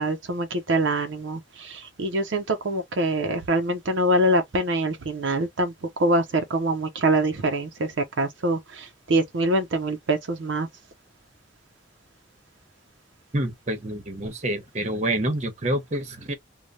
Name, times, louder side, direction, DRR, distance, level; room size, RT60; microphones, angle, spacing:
voice 1, 0.0-5.7 6.0-10.7, right 1 dB, 80° right, 0.6 m, -24 dB
voice 2, 13.3-16.3, right 1 dB, 35° right, 0.9 m, -27 dB
3.1 x 2.2 x 2.5 m
head